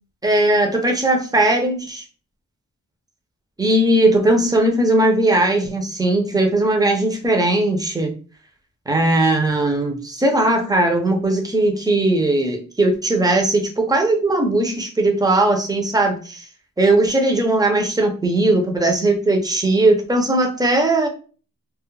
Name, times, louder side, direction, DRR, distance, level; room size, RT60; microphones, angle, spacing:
voice 1, 0.2-2.0 3.6-8.1 8.9-16.5 16.8-21.1, right 2 dB, 10° right, 3 dB, 0.4 m, -18 dB
2.2 x 2.0 x 3.0 m, 0.38 s
wide cardioid pair, 135°, 33 cm